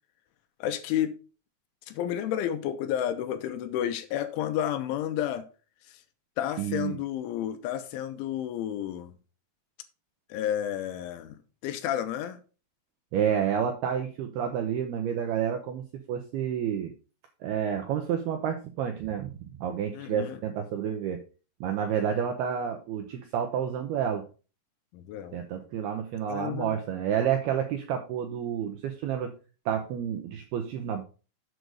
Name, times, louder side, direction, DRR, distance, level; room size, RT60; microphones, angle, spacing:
voice 1, 0.6-1.1 1.9-5.5 6.4-9.1 10.3-11.4 11.6-12.4 19.9-20.4 24.9-25.4 26.3-26.7, left 10 dB, 85° left, 3.2 m, -31 dB
voice 2, 6.6-7.0 13.1-16.9 17.4-21.2 21.6-24.2 25.3-29.3 29.7-31.0, right 8 dB, 85° right, 2.3 m, -30 dB
7.9 x 6.4 x 5.2 m
omnidirectional pair, 5.7 m